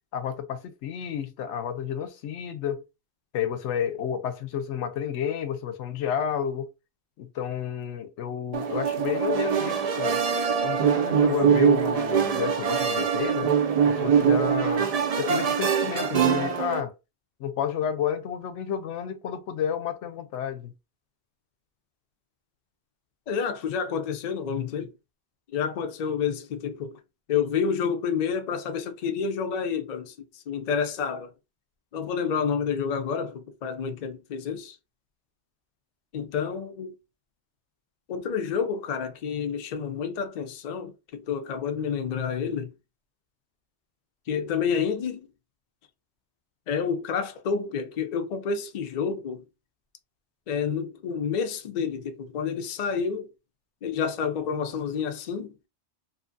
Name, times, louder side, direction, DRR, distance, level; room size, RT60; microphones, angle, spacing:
voice 1, 0.1-2.8 3.3-6.7 7.2-10.2 10.6-13.5 13.8-14.9 15.2-16.9 17.4-20.7, left 8 dB, 85° left, 0.9 m, -31 dB
sound 1, 8.5-16.8, right 7 dB, 65° right, 0.4 m, -23 dB
voice 2, 23.3-24.9 25.5-27.0 27.3-31.3 31.9-34.8 36.1-36.9 38.1-42.7 44.3-45.3 46.7-49.4 50.5-53.3 53.8-55.5, left 6 dB, 55° left, 0.4 m, -29 dB
2.7 x 2.4 x 2.5 m
omnidirectional pair, 1.2 m